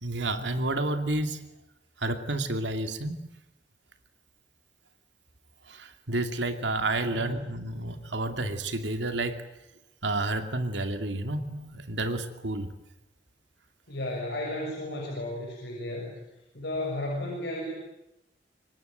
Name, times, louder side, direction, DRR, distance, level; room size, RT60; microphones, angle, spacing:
voice 1, 0.0-1.4 2.0-3.2 5.7-9.4 10.0-12.7, right 2 dB, 75° right, 7 dB, 2.6 m, -30 dB
voice 2, 7.0-7.4 13.9-16.2 16.5-17.7, left 1 dB, 65° left, -2 dB, 6.7 m, -33 dB
26.5 x 23.5 x 9.3 m, 0.90 s
head